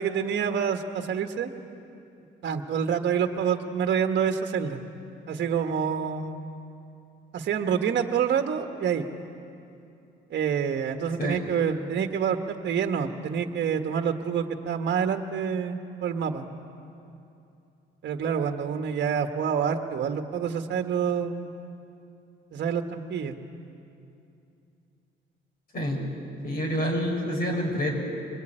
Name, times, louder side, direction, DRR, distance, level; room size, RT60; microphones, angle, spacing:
voice 1, 0.0-1.5 2.4-4.8 5.3-6.4 7.3-9.0 10.3-16.5 18.0-21.5 22.5-23.4, right 7 dB, 60° right, 5 dB, 1.5 m, -27 dB
voice 2, 26.4-27.9, equal, 50° left, 0 dB, 6.8 m, -27 dB
25.0 x 20.5 x 9.0 m, 2.7 s
cardioid pair, 90°, 20 cm